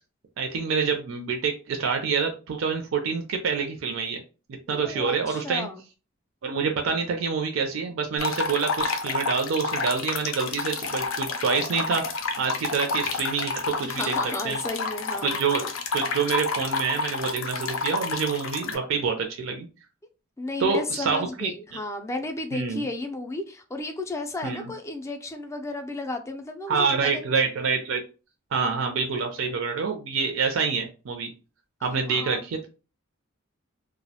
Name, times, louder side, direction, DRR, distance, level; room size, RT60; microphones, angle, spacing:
voice 1, 0.4-4.2 4.7-5.7 6.4-12.0 12.4-14.6 15.2-19.7 20.6-21.5 22.5-22.8 24.4-24.7 26.7-28.0 28.5-31.3 31.8-32.7, right 5 dB, 75° right, 0.4 m, -27 dB
voice 2, 4.7-5.8 13.8-15.4 20.4-27.2 31.8-32.4, left 2 dB, 15° left, 0.3 m, -33 dB
sound 1, 8.2-18.8, left 4 dB, 80° left, 0.4 m, -30 dB
2.3 x 2.0 x 2.7 m
head